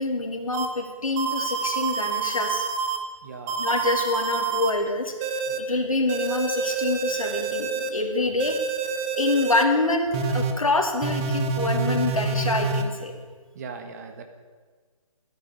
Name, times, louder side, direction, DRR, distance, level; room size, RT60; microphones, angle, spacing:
voice 1, 0.0-2.6 3.6-5.3 5.6-8.6 9.2-13.1, left 2 dB, 70° left, 3 dB, 2.7 m, -26 dB
sound 1, 0.5-0.7 1.2-3.0 3.5-4.7 5.2-5.6 6.1-7.9 8.4-9.6 10.1-10.5 11.0-12.8, right 4 dB, 10° right, 0.5 m, -27 dB
voice 2, 3.2-3.6 5.5-5.6 13.5-14.2, right 5 dB, 30° right, 6 dB, 1.4 m, -39 dB
12.5 x 10.0 x 9.4 m, 1.5 s
figure-of-eight pair, 150°, 18 cm